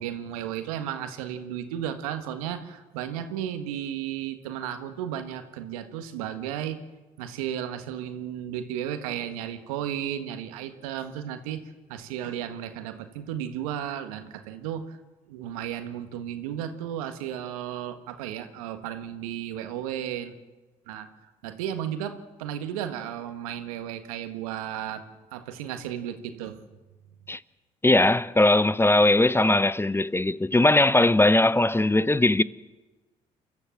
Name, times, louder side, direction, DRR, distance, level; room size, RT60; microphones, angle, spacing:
voice 1, 0.0-6.8 7.2-11.6 11.9-15.0 15.3-20.3 20.9-21.1 21.4-25.0 25.3-26.6, right 10 dB, 85° right, 1.6 m, -34 dB
voice 2, 27.8-32.4, left 2 dB, 15° left, 0.8 m, -20 dB
29.0 x 13.5 x 7.6 m
hypercardioid pair, 50°, 18 cm